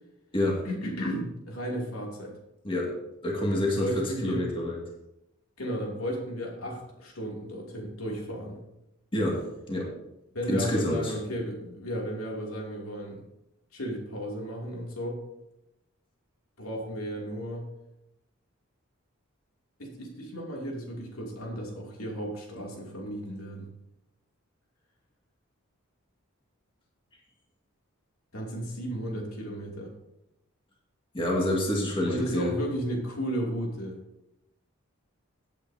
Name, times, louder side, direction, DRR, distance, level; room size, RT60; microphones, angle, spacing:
voice 1, 0.6-2.4 3.5-4.4 5.6-8.6 10.3-13.2 13.7-15.2 16.6-17.7 19.8-23.7 28.3-29.9 32.0-34.0, equal, 80° left, -1 dB, 2.8 m, -34 dB
voice 2, 2.6-3.0 3.2-4.8 9.1-9.9 10.5-11.1 31.1-32.5, left 1 dB, 25° left, -3 dB, 2.2 m, -28 dB
16.5 x 8.3 x 2.8 m, 0.87 s
head